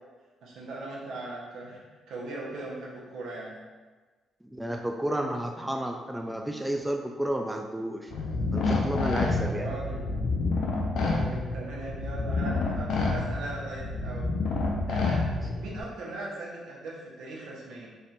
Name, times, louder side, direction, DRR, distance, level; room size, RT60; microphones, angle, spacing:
voice 1, 0.4-1.8 2.1-3.6 9.4-10.0 11.0-14.3 14.8-17.9, right 2 dB, 80° right, -4 dB, 1.0 m, -39 dB
voice 2, 4.4-8.1 8.5-9.7, right 1 dB, 10° right, 3 dB, 0.3 m, -31 dB
sound 1, 8.1-15.8, left 3 dB, 70° left, 0.6 m, -28 dB
3.4 x 2.4 x 4.2 m, 1.3 s
cardioid pair, 90°, 0 cm